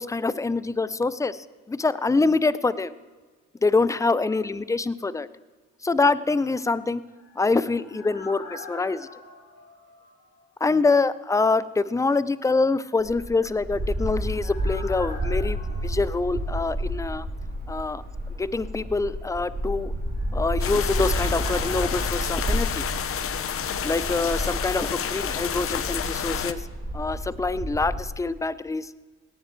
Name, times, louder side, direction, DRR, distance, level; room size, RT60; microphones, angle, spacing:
voice 1, 0.0-2.9 3.6-5.3 5.8-7.0 7.4-9.1 10.6-17.3 17.7-19.9 20.3-22.9 23.8-26.7 26.9-28.9, left 3 dB, 10° left, 17 dB, 0.4 m, -25 dB
sound 1, 7.0-10.7 11.0-11.1 13.5-17.2 17.5-17.6 19.8-23.7 23.9-24.0, left 2 dB, 85° left, 4.0 m, -45 dB
sound 2, 13.0-28.0, equal, 30° right, 2.3 m, -30 dB
sound 3, 20.6-26.5, left 8 dB, 50° left, 0.7 m, -30 dB
18.0 x 10.0 x 4.5 m, 1.4 s
cardioid pair, 90°, 30 cm